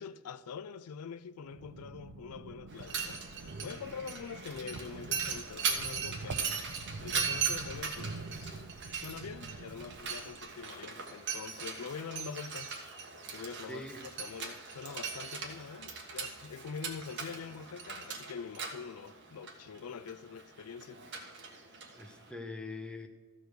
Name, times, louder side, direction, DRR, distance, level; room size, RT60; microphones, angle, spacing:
voice 1, 0.0-3.2 3.6-6.6 7.0-8.6 9.0-12.7 13.3-13.9 14.2-21.0, left 6 dB, 85° left, 0.4 m, -44 dB
sound 1, 1.4-10.6, right 3 dB, 70° right, 0.6 m, -46 dB
Mechanisms, 2.7-22.3, right 6 dB, 55° right, 1.5 m, -39 dB
voice 2, 13.7-14.1 21.9-23.1, left 2 dB, 5° left, 0.8 m, -43 dB
14.0 x 5.0 x 6.3 m
head